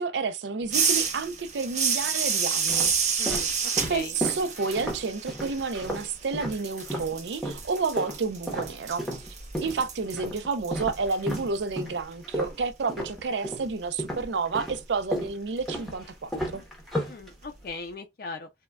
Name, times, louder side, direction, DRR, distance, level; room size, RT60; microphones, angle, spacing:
voice 1, 0.0-2.9 3.2-3.4 3.9-9.1 9.6-16.7, right 4 dB, 75° right, 0.5 m, -30 dB
sound 1, 0.6-1.3 2.0-7.1 7.4-13.7 14.0-17.7, equal, ahead, 0.8 m, -34 dB
sound 2, 0.7-6.2 6.5-11.4, right 6 dB, 40° right, 0.7 m, -29 dB
voice 2, 3.2-4.1 17.1-18.5, left 3 dB, 55° left, 0.4 m, -39 dB
3.6 x 2.2 x 2.2 m
head